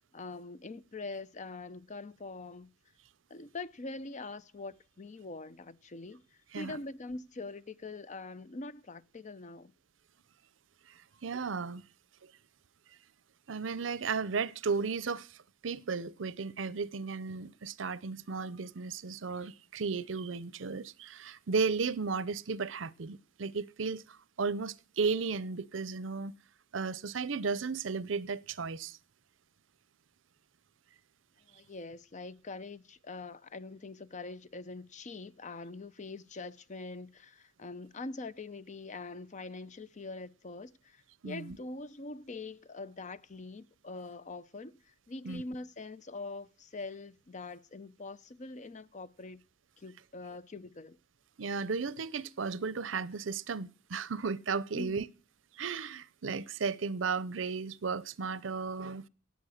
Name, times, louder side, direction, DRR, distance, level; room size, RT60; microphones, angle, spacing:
voice 1, 0.0-2.7 3.3-6.2 6.6-9.7 31.5-49.4 49.8-51.0 54.7-55.0, left 3 dB, 40° left, 0.7 m, -43 dB
voice 2, 10.9-11.8 13.5-15.4 15.6-26.3 26.7-29.0 41.2-41.6 45.2-45.4 51.4-55.1 55.5-59.1, right 5 dB, 70° right, 0.7 m, -34 dB
16.5 x 8.1 x 6.4 m
head